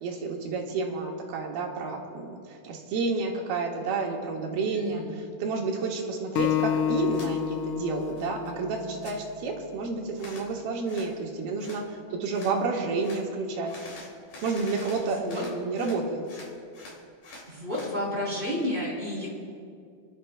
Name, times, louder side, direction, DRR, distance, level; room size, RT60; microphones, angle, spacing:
voice 1, 0.0-5.0 5.4-13.7 14.4-16.2, right 4 dB, 80° right, 0 dB, 3.3 m, -30 dB
voice 2, 4.7-5.1 15.0-15.4 17.3-19.3, left 1 dB, 15° right, -6 dB, 3.5 m, -31 dB
Acoustic guitar, 6.4-9.6, left 10 dB, 90° left, 1.8 m, -30 dB
sound 1, 7.1-7.3 7.7-8.5 8.8-9.2 10.2-10.5 10.9-11.1 11.6-11.8 12.3-12.6 13.0-13.2 13.7-16.0 16.3-17.9, left 2 dB, 60° left, 5.0 m, -45 dB
30.0 x 12.0 x 2.3 m, 2.3 s
omnidirectional pair, 4.4 m